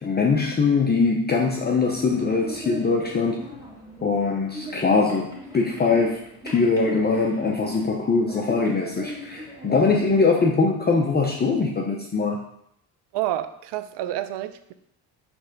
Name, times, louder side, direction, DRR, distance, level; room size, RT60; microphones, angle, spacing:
voice 1, 0.0-3.4 4.0-12.4, left 4 dB, 25° left, 1 dB, 0.6 m, -22 dB
sound 1, 1.8-10.2, left 1 dB, 10° right, 1.9 m, -40 dB
voice 2, 13.1-14.7, right 13 dB, 80° right, 12 dB, 0.6 m, -29 dB
6.0 x 3.3 x 5.2 m, 0.74 s
cardioid pair, 95°, 41 cm